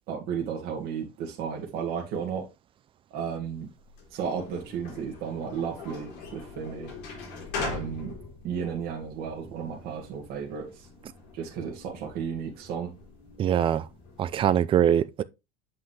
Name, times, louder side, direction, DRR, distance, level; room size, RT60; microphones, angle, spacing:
voice 1, 0.1-2.5 3.1-3.7 4.1-6.9 7.6-8.1 8.4-10.9 11.3-12.9, right 7 dB, 50° right, 2.1 m, -33 dB
sound 1, 3.7-14.5, left 4 dB, 60° left, 4.0 m, -42 dB
voice 2, 13.4-13.8 14.2-15.2, right 9 dB, 25° right, 0.5 m, -23 dB
7.9 x 5.7 x 3.3 m
cardioid pair, 160°, 20 cm